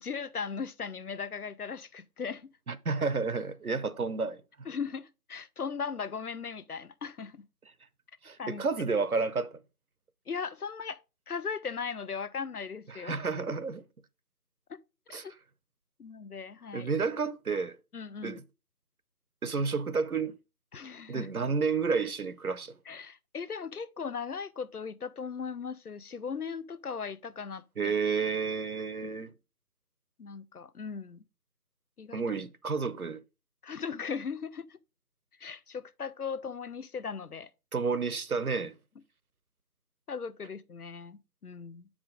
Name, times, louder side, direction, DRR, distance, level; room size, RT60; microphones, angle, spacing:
voice 1, 0.0-2.5 4.7-7.5 8.4-8.6 10.3-11.0 11.3-13.2 14.7-14.8 15.1-15.3 16.0-16.9 17.9-18.4 20.7-21.3 22.9-27.9 30.2-31.2 32.0-32.3 33.6-34.8 35.4-37.5 40.1-41.9, left 6 dB, 70° left, 0.6 m, -38 dB
voice 2, 2.7-4.4 8.2-9.6 12.9-13.8 15.1-15.3 16.7-17.8 18.2-18.4 19.4-20.3 21.1-22.8 27.8-29.3 32.1-33.2 37.7-38.7, right 4 dB, 65° right, 0.7 m, -31 dB
7.1 x 5.0 x 3.6 m
figure-of-eight pair, 170°, 48 cm